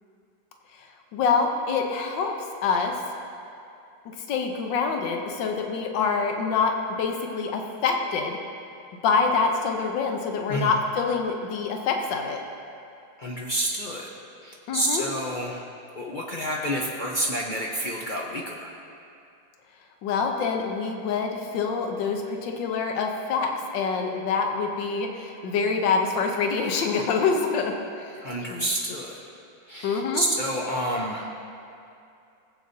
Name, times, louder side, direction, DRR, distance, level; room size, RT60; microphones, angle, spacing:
voice 1, 1.1-2.3 2.6-3.0 4.1-6.7 7.0-8.4 9.0-12.4 14.7-15.1 20.0-28.2 28.5-28.6 29.8-30.2, left 5 dB, 80° left, 3 dB, 1.5 m, -26 dB
voice 2, 13.2-14.1 14.4-15.6 15.9-18.7 28.2-29.2 29.7-31.3, right 1 dB, 55° left, -2 dB, 0.5 m, -29 dB
18.0 x 8.1 x 2.7 m, 2.6 s
omnidirectional pair, 2.0 m